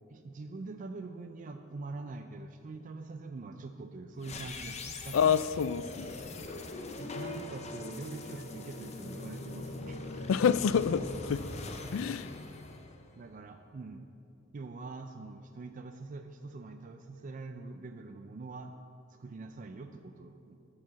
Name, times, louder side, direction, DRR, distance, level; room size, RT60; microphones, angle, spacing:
voice 1, 0.1-5.4 7.0-10.0 13.1-14.1 14.5-18.7 19.1-20.6, right 3 dB, 40° right, 6 dB, 0.4 m, -44 dB
sound 1, 4.2-13.4, left 2 dB, 35° left, 0.7 m, -42 dB
voice 2, 5.1-6.1 10.3-11.4 11.9-12.3, left 7 dB, 75° left, 16 dB, 0.3 m, -27 dB
12.0 x 4.7 x 7.3 m, 2.6 s
head